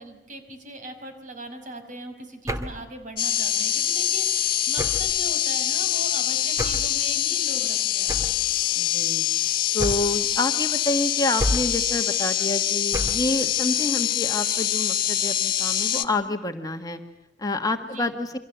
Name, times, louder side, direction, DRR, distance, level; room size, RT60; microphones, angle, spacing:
voice 1, 0.0-8.4 15.9-16.3 17.8-18.1, right 1 dB, 45° right, 7 dB, 5.5 m, -40 dB
sound 1, 2.5-2.9 4.8-5.2 6.6-7.0 8.1-8.5 9.8-10.3 11.4-11.9 12.9-13.4, equal, 15° right, 2.1 m, -29 dB
sound 2, 3.2-16.0, left 11 dB, 50° left, 1.6 m, -24 dB
voice 2, 8.8-9.2 9.7-17.0 17.4-18.3, left 2 dB, 20° left, 4 dB, 1.6 m, -28 dB
29.0 x 25.0 x 8.1 m, 0.85 s
head